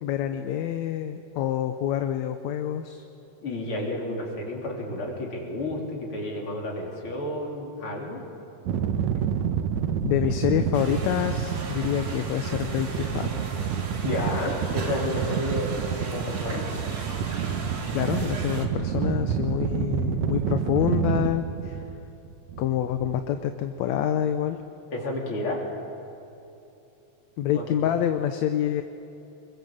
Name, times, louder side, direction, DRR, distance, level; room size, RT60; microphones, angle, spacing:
voice 1, 0.0-3.0 10.0-13.3 17.9-21.8 22.6-24.6 27.4-28.8, left 10 dB, 75° left, 8 dB, 2.1 m, -27 dB
voice 2, 3.4-8.2 14.0-16.6 24.9-25.7 27.5-27.7, left 1 dB, 45° left, -1 dB, 4.5 m, -31 dB
sound 1, 8.7-23.2, right 8 dB, 75° right, 2.3 m, -29 dB
sound 2, 10.7-18.7, right 3 dB, 55° right, 3.4 m, -38 dB
26.0 x 22.5 x 7.6 m, 2.9 s
omnidirectional pair, 3.3 m